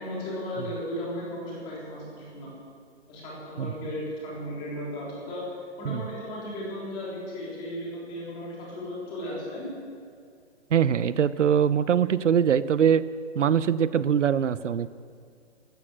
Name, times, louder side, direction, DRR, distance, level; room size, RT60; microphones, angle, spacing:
voice 1, 0.0-2.5 3.1-5.5 5.8-9.7, left 1 dB, 15° left, -5 dB, 3.5 m, -35 dB
voice 2, 10.7-13.0 13.3-14.9, right 8 dB, 90° right, 17 dB, 0.7 m, -22 dB
15.0 x 13.5 x 6.3 m, 2.2 s
hypercardioid pair, 170°, 35 cm